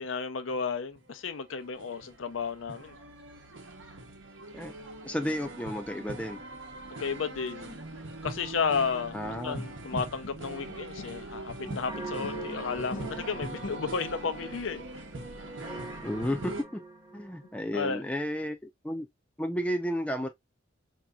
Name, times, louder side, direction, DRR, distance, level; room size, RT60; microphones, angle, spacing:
voice 1, 0.0-3.0 7.0-7.8 8.2-15.0 17.7-18.0, left 5 dB, 85° left, 0.6 m, -33 dB
sound 1, 1.0-16.6, right 2 dB, 75° right, 0.9 m, -42 dB
voice 2, 5.0-6.4 9.1-9.7 16.0-16.8 17.1-19.1 19.4-20.3, equal, 5° left, 0.5 m, -32 dB
sound 2, 9.6-11.3 11.7-14.2, left 2 dB, 40° left, 0.8 m, -45 dB
sound 3, 11.9-18.0, right 2 dB, 20° right, 0.9 m, -44 dB
4.5 x 2.9 x 2.3 m
head